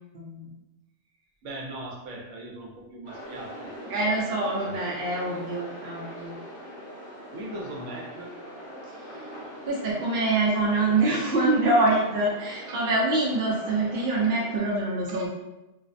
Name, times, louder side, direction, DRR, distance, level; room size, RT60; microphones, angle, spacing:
voice 1, 0.1-0.5 3.9-6.4 9.7-15.3, right 2 dB, 60° right, -3 dB, 0.6 m, -25 dB
voice 2, 1.4-4.8 7.3-8.4 11.2-11.5 12.7-12.8 15.1-15.2, right 1 dB, 80° right, -1 dB, 0.9 m, -40 dB
sound 1, 3.0-14.6, equal, 35° left, 0.5 m, -42 dB
2.4 x 2.0 x 2.5 m, 0.97 s
omnidirectional pair, 1.3 m